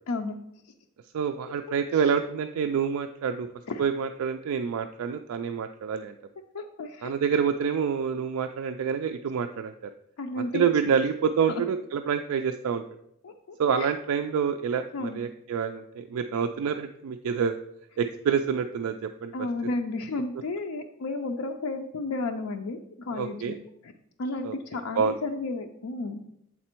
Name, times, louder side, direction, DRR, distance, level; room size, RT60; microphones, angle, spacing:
voice 1, 0.1-0.4 1.7-1.8 3.7-3.8 6.5-7.1 10.2-10.7 11.5-11.6 13.2-13.9 14.9-15.2 19.3-23.9 24.2-26.2, left 2 dB, 80° left, 4 dB, 0.5 m, -33 dB
voice 2, 1.1-3.5 3.8-6.1 7.0-9.9 10.5-12.8 13.6-17.6 18.0-19.3 23.1-23.5 24.4-24.6 25.0-25.2, right 6 dB, 75° right, 7 dB, 0.3 m, -27 dB
7.4 x 4.2 x 4.4 m, 0.77 s
head